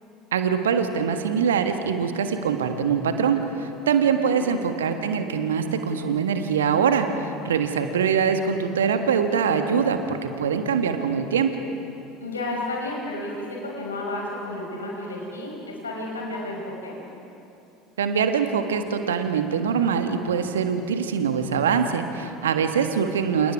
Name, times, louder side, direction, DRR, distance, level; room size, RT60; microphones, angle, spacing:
voice 1, 0.3-11.5 18.0-23.5, right 6 dB, 70° right, 7 dB, 1.7 m, -23 dB
voice 2, 3.9-4.4 12.2-16.9, left 2 dB, 80° left, -2 dB, 5.8 m, -32 dB
29.0 x 28.5 x 4.8 m, 2.7 s
figure-of-eight pair, 70°, 0 cm